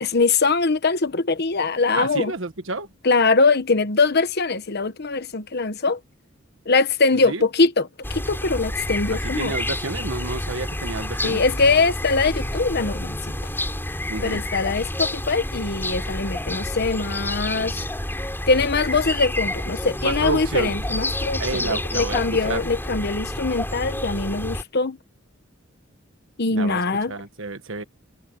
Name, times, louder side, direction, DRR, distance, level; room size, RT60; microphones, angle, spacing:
voice 1, 0.0-2.3 3.0-6.0 6.7-9.6 11.2-13.2 14.2-17.8 18.5-25.0 26.4-27.1, left 3 dB, 55° left, 1.1 m, -22 dB
voice 2, 2.0-2.9 7.2-7.4 9.2-11.4 14.1-14.4 20.0-20.7 21.4-22.6 26.5-26.8 27.1-27.8, right 3 dB, 65° right, 1.4 m, -30 dB
sound 1, 8.0-24.6, left 1 dB, 10° left, 6.7 m, -29 dB
head